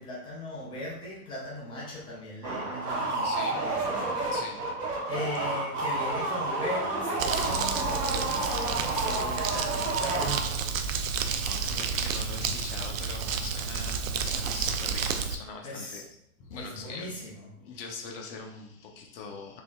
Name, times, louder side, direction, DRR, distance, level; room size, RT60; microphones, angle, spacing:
voice 1, 0.0-4.3 5.0-10.4 15.6-16.0 16.5-17.5, left 1 dB, 10° left, -4 dB, 0.5 m, -38 dB
sound 1, 2.4-10.7, right 2 dB, 85° right, 1.1 m, -30 dB
voice 2, 3.2-3.6 4.3-4.7 5.1-5.2 11.4-16.1 16.4-17.3 17.6-19.6, left 4 dB, 40° left, 2 dB, 0.8 m, -42 dB
Crumpling crinkling, 7.2-15.4, right 6 dB, 60° right, 0.6 m, -31 dB
4.2 x 3.4 x 2.3 m, 0.73 s
figure-of-eight pair, 110°, 45 cm